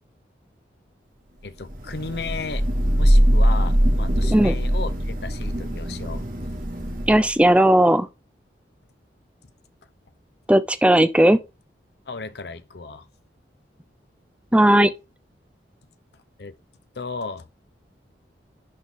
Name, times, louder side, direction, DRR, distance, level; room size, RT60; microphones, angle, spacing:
voice 1, 1.4-2.6 3.0-6.2 12.1-13.1 16.4-16.6 17.0-17.5, left 4 dB, 65° left, 0.7 m, -34 dB
Thunder / Rain, 1.7-7.4, equal, 50° right, 1.4 m, -21 dB
voice 2, 7.1-8.1 10.5-11.4 14.5-14.9, right 1 dB, 5° right, 0.5 m, -16 dB
10.5 x 4.1 x 3.7 m
head